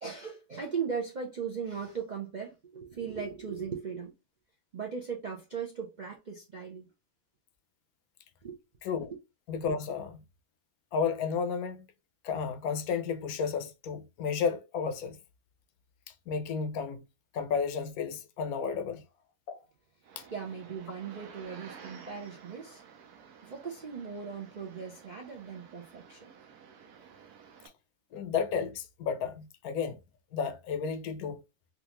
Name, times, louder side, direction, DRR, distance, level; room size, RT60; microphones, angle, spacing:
voice 1, 0.0-4.1 4.7-6.9 8.4-8.6 20.3-22.8 23.4-26.3, right 6 dB, 55° right, 0.4 m, -38 dB
voice 2, 9.5-10.2 10.9-11.9 12.2-15.2 16.1-17.0 17.3-19.0 19.5-19.6 20.2-20.3 28.1-30.0 30.3-31.4, left 6 dB, 75° left, 1.0 m, -32 dB
sound 1, 20.0-27.7, right 7 dB, 80° right, 1.2 m, -52 dB
3.7 x 2.4 x 2.9 m
omnidirectional pair, 1.6 m